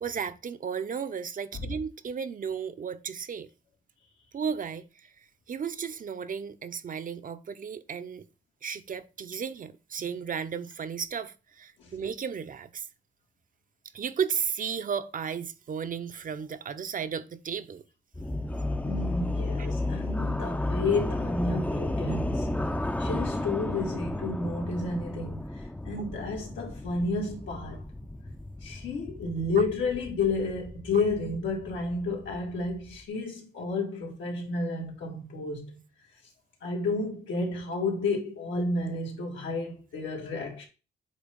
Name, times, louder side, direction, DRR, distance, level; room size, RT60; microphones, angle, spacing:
voice 1, 0.0-3.5 4.3-4.8 5.5-8.2 8.6-12.9 13.9-17.8 19.6-19.7 26.0-26.1, right 7 dB, 45° right, 0.7 m, -34 dB
sound 1, 18.1-33.0, left 2 dB, 10° left, 0.5 m, -33 dB
voice 2, 18.8-22.5 23.0-27.8 28.6-35.8 36.6-40.6, left 3 dB, 85° left, 2.4 m, -31 dB
8.2 x 2.8 x 5.1 m
cardioid pair, 95°, 19 cm